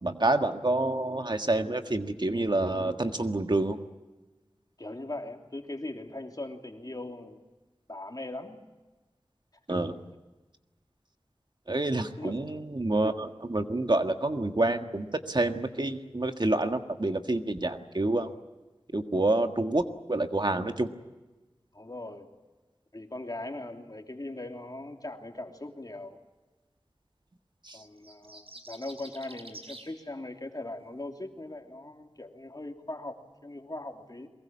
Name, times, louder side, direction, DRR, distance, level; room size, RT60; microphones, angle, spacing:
voice 1, 0.0-3.8 9.7-9.9 11.7-18.3 18.9-20.9 27.7-27.8, right 2 dB, 50° right, 6 dB, 1.6 m, -28 dB
voice 2, 4.8-7.4 7.9-8.6 9.7-9.8 12.2-12.3 21.7-22.3 22.9-26.2 27.7-34.3, left 2 dB, 40° left, 3 dB, 3.0 m, -40 dB
sound 1, 27.8-29.9, right 2 dB, 75° right, 4.9 m, -47 dB
23.5 x 21.5 x 8.6 m, 1.2 s
wide cardioid pair, 40°, 10 cm